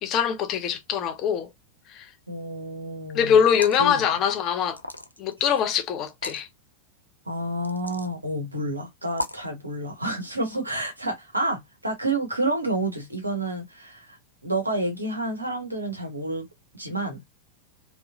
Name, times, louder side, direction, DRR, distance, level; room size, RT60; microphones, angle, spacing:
voice 1, 0.0-1.5 1.9-2.1 3.1-4.8 5.2-6.5, left 8 dB, 35° left, 0.6 m, -23 dB
voice 2, 2.3-3.4 3.8-4.2 7.3-14.2 14.4-16.5 16.7-17.2, right 1 dB, 85° right, 1.0 m, -29 dB
sound 1, 3.4-3.9 4.7-5.3 6.1-6.4 7.6-8.1 9.1-9.5, left 1 dB, 90° left, 0.3 m, -34 dB
3.0 x 2.1 x 2.3 m
figure-of-eight pair, 90°, 0 cm